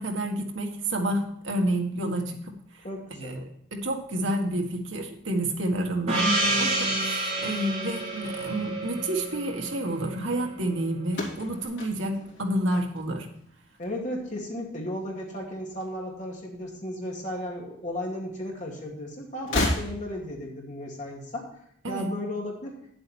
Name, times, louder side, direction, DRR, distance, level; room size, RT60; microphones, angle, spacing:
voice 1, 0.0-2.5 3.2-3.4 3.7-13.3 21.8-22.1, right 1 dB, 70° right, 2 dB, 1.7 m, -29 dB
voice 2, 2.8-3.4 13.8-21.4 21.9-22.8, left 1 dB, 40° left, -2 dB, 2.5 m, -34 dB
Gong, 6.1-10.4, right 2 dB, 35° right, 2.8 m, -28 dB
sound 1, 11.1-13.4 13.7-14.3 15.4-16.4 16.6-16.8 17.9-18.0 19.4-20.4, left 1 dB, 65° left, 3.3 m, -32 dB
9.8 x 7.8 x 4.4 m, 0.70 s
head